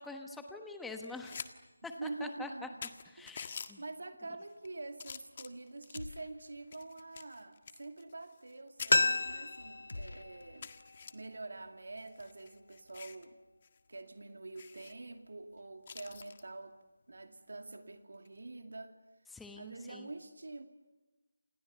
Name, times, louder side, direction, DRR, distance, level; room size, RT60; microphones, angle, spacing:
voice 1, 0.0-1.4 1.8-2.5 3.1-3.8 19.3-20.1, left 3 dB, 5° left, 4 dB, 1.2 m, -45 dB
sound 1, 1.0-1.5 1.9-2.0 2.5-2.6 2.8-3.7 4.4-4.7 5.0-6.2 6.7-8.5 8.8-9.0 9.6-9.7 10.0-10.1 10.6-11.1 12.0-13.3 13.6-13.8 14.1-14.2 14.6-14.9 15.9-16.4 18.1-18.4, left 6 dB, 35° left, 1.6 m, -47 dB
voice 2, 1.8-2.8 3.2-3.3 3.8-10.7 11.1-13.4 13.9-16.8 17.1-19.0 19.6-20.7, right 2 dB, 70° right, 6 dB, 2.4 m, -46 dB
sound 2, 5.9-6.8 7.1-7.2 9.9-11.2, left 2 dB, 80° left, 1.5 m, -48 dB
sound 3, 8.9-11.7 12.0-12.1, left 3 dB, 60° left, 1.1 m, -33 dB
29.0 x 27.5 x 7.0 m, 1.2 s
figure-of-eight pair, 165°, 0 cm